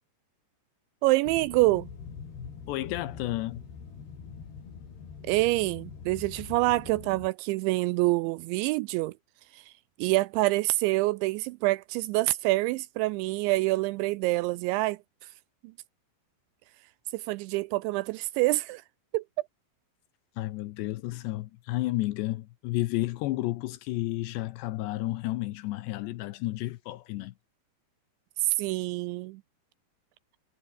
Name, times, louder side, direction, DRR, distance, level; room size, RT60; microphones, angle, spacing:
voice 1, 1.0-1.9 5.2-9.1 9.5-9.7 10.0-15.0 17.1-18.8 19.1-19.2 28.4-29.4, right 20 dB, 85° right, 2.7 m, -26 dB
sound 1, 1.3-7.3, left 6 dB, 55° left, 6.8 m, -44 dB
voice 2, 2.7-3.6 20.4-27.3, left 17 dB, 75° left, 2.7 m, -32 dB
omnidirectional pair, 5.6 m